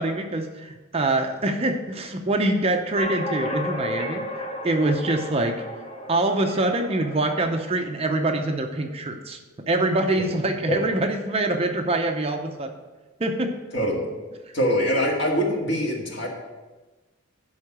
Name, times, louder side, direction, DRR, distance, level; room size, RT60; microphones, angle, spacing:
voice 1, 0.0-5.6 6.1-9.4 9.7-12.7 13.2-13.6, right 2 dB, 25° right, 4 dB, 0.6 m, -24 dB
sound 1, 3.0-7.7, left 1 dB, 30° left, 0.9 m, -33 dB
voice 2, 14.5-16.3, equal, 55° left, -1 dB, 1.9 m, -23 dB
11.5 x 3.9 x 7.3 m, 1.2 s
head